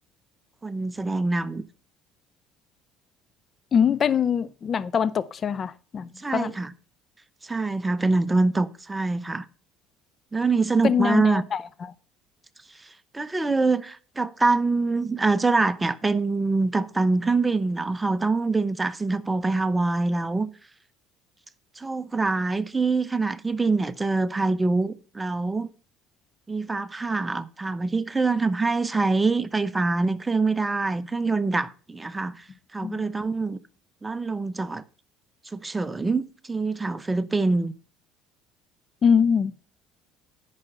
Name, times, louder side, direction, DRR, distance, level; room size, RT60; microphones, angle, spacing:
voice 1, 0.6-1.6 6.2-6.7 7.4-9.4 10.3-11.4 13.1-20.5 21.8-25.7 26.5-32.4 32.7-33.6 34.0-34.8 35.5-37.7, right 3 dB, 15° right, 0.8 m, -24 dB
voice 2, 3.7-6.5 10.8-11.9 32.8-33.0 39.0-39.5, left 7 dB, 40° left, 0.5 m, -23 dB
9.6 x 6.0 x 5.6 m
supercardioid pair, 75°, 0 cm